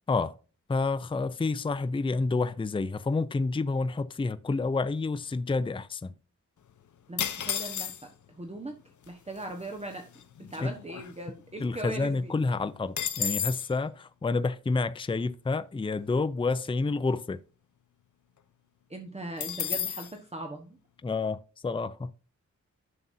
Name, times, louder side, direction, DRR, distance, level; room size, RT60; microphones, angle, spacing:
voice 1, 0.7-6.1 10.6-10.7 11.6-17.4 21.0-22.1, left 3 dB, 15° left, 0.5 m, -29 dB
voice 2, 7.1-7.9 8.3-8.7 9.1-10.1 10.5-12.3 18.9-20.8, right 2 dB, 20° right, 1.2 m, -39 dB
sound 1, 7.2-8.3 9.1-9.2 9.4-9.7 10.1-11.6 11.9-12.0 12.3-13.7 19.4-20.1, left 8 dB, 80° left, 0.8 m, -32 dB
11.0 x 7.0 x 2.7 m
wide cardioid pair, 145°, 30 cm